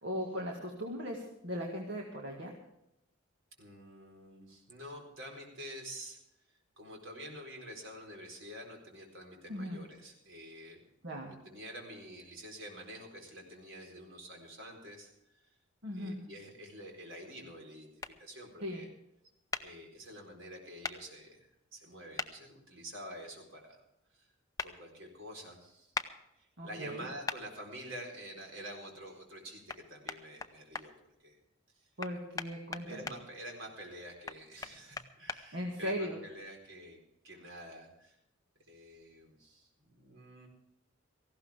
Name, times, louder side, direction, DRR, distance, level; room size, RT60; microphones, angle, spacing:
voice 1, 0.0-2.5 9.5-9.8 11.0-11.3 15.8-16.2 18.6-18.8 26.6-27.0 32.0-33.0 35.5-36.2, equal, 60° right, 0 dB, 2.0 m, -38 dB
voice 2, 3.6-6.2 6.5-10.8 11.2-15.6 15.9-18.9 19.6-23.8 24.1-24.3 24.6-25.9 26.4-31.4 31.7-31.9 32.8-37.0 37.2-38.2 38.7-40.5, equal, 75° right, 1 dB, 4.3 m, -48 dB
sound 1, 18.0-18.1 19.5-19.6 20.8-21.0 22.2-22.3 24.6-24.7 25.9-26.1 27.3-27.4 29.7-29.8 30.1-30.9 32.0-33.2 34.3-35.4, left 4 dB, 15° left, 0.7 m, -38 dB
18.0 x 15.5 x 3.6 m, 0.84 s
head